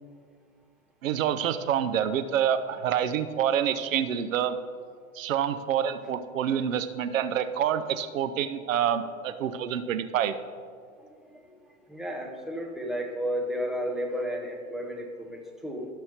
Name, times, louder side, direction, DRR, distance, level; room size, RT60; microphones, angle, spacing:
voice 1, 1.0-4.6 5.1-10.4, right 9 dB, 75° right, 11 dB, 0.7 m, -27 dB
voice 2, 11.2-11.6 11.9-15.9, equal, ahead, 1 dB, 0.8 m, -33 dB
15.0 x 6.3 x 2.9 m, 2.1 s
hypercardioid pair, 125°, 41 cm